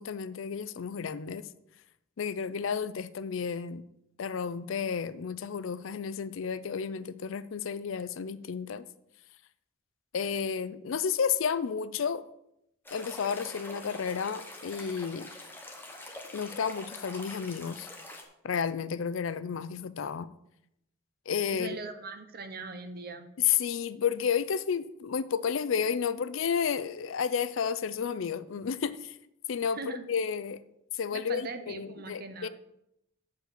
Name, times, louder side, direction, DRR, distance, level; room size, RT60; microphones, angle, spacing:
voice 1, 0.0-1.5 2.2-3.8 4.2-8.8 10.1-12.2 12.9-15.3 16.3-17.9 18.4-20.3 21.3-21.8 23.4-29.2 29.5-30.6 30.9-32.5, left 7 dB, 70° left, 0.4 m, -31 dB
sound 1, 12.8-18.2, left 1 dB, 10° left, 1.0 m, -45 dB
voice 2, 21.5-23.3 29.7-30.0 31.1-32.5, right 3 dB, 45° right, 0.8 m, -40 dB
7.9 x 4.8 x 6.6 m
head